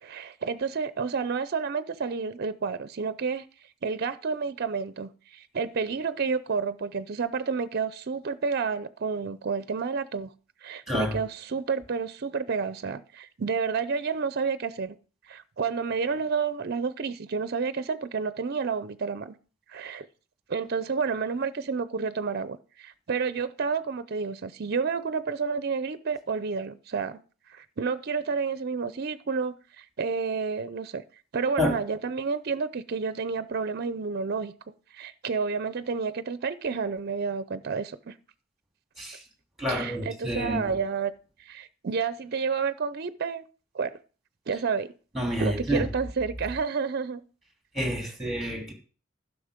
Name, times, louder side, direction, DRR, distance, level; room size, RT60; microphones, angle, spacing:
voice 1, 0.0-3.5 3.8-10.3 10.6-15.0 15.3-19.4 19.7-20.1 20.5-27.2 27.5-31.0 31.3-34.5 34.9-38.1 39.7-41.1 41.4-43.4 43.7-43.9 44.5-44.9 45.4-47.2, right 5 dB, 50° right, 0.5 m, -30 dB
voice 2, 39.6-40.7 45.1-45.9 47.7-48.7, equal, ahead, 2.8 m, -28 dB
11.5 x 6.1 x 5.1 m
head